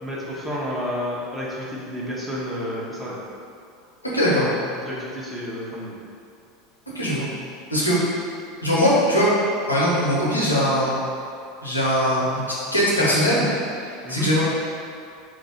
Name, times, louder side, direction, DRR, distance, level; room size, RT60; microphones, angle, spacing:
voice 1, 0.0-3.2 4.9-5.9 14.0-14.3, equal, 5° right, -7 dB, 0.9 m, -30 dB
voice 2, 4.1-4.5 6.9-7.3 7.7-8.0 8.6-9.3 9.7-11.0 11.6-12.4 12.7-13.5 13.8-14.4, equal, 85° left, -7 dB, 0.8 m, -20 dB
3.1 x 2.6 x 4.1 m, 2.4 s
figure-of-eight pair, 75°, 0 cm